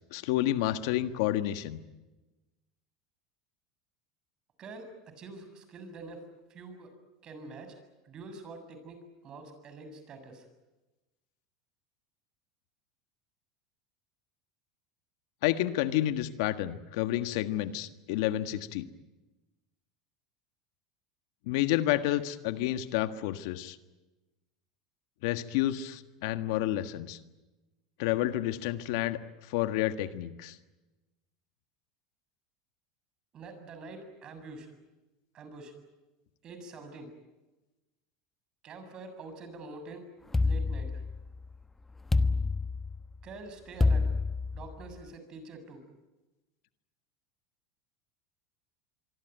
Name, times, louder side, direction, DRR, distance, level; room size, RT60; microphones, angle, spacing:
voice 1, 0.1-1.8 15.4-18.9 21.5-23.8 25.2-27.2 28.0-30.6, left 14 dB, 70° left, 10 dB, 1.6 m, -30 dB
voice 2, 4.6-4.9 5.2-6.2 6.5-6.9 7.2-7.8 8.0-10.5 33.3-34.7 35.3-35.7 36.4-37.1 38.6-40.1 40.4-41.0 43.2-44.1 44.5-45.8, right 3 dB, 40° right, 8 dB, 7.0 m, -46 dB
sound 1, 40.3-41.4 42.1-43.2 43.8-44.9, left 3 dB, 10° left, 1.1 m, -27 dB
25.0 x 24.0 x 9.3 m, 1.1 s
supercardioid pair, 115°, 2 cm